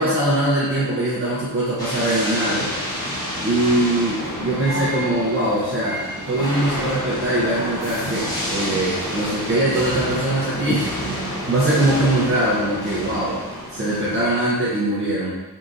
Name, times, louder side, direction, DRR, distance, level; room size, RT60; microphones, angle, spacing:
voice 1, 0.0-2.7 3.4-13.4 13.7-15.3, right 1 dB, 35° right, -9 dB, 0.7 m, -22 dB
sound 1, 1.8-14.5, equal, 10° left, 1.0 m, -29 dB
4.6 x 2.6 x 2.5 m, 1.1 s
wide cardioid pair, 135°, 39 cm